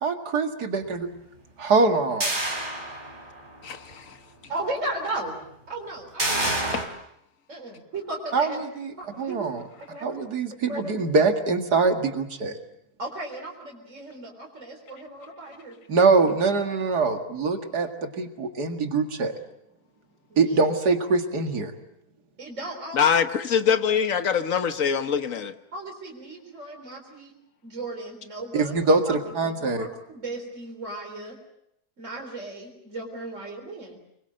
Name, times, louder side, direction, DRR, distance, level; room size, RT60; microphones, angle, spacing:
voice 1, 0.0-1.1 1.6-2.4 8.3-9.6 10.0-12.6 15.9-19.3 20.4-21.7 28.5-29.9, right 4 dB, 80° right, 6 dB, 2.6 m, -23 dB
sound 1, 2.2-3.5 3.9-4.0 6.2-6.8, right 1 dB, 30° right, 4.1 m, -27 dB
voice 2, 3.6-4.2 6.5-6.9 22.9-25.5, left 7 dB, 55° left, 10 dB, 1.6 m, -24 dB
voice 3, 4.5-5.4 5.7-6.7 7.5-8.6 9.0-9.5 9.9-10.2 10.7-11.0 13.0-15.8 20.3-20.6 22.4-23.1 25.7-27.3 27.6-28.7 29.1-29.2 29.4-31.4 32.0-34.0, right 2 dB, 50° right, 0 dB, 4.3 m, -36 dB
25.5 x 22.0 x 7.8 m, 0.78 s
omnidirectional pair, 1.7 m